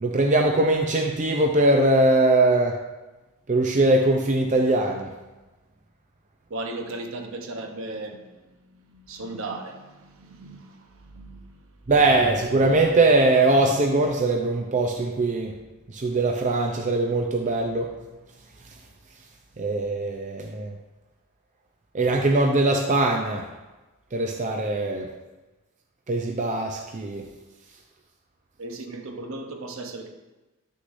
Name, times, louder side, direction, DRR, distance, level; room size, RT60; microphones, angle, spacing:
voice 1, 0.0-2.8 3.5-5.1 11.9-15.6 15.9-17.9 19.6-20.7 21.9-23.5 24.1-25.1 26.1-27.3, right 2 dB, 35° right, 1 dB, 0.5 m, -21 dB
voice 2, 6.5-8.4 8.7-11.5 28.6-30.1, right 2 dB, 60° right, 4 dB, 0.9 m, -36 dB
9.6 x 6.5 x 2.6 m, 1.1 s
head